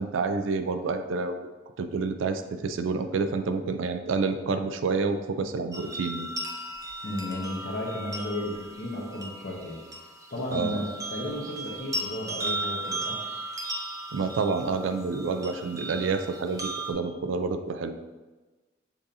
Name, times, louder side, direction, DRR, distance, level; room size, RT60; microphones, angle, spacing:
voice 1, 0.0-1.4 1.8-6.3 10.5-10.8 14.1-17.9, right 4 dB, 80° right, 8 dB, 0.4 m, -28 dB
sound 1, 5.7-16.9, right 1 dB, 20° right, 0.4 m, -36 dB
voice 2, 7.0-9.8 10.3-13.2, left 1 dB, 55° left, -1 dB, 0.8 m, -34 dB
6.9 x 2.6 x 2.7 m, 1.2 s
head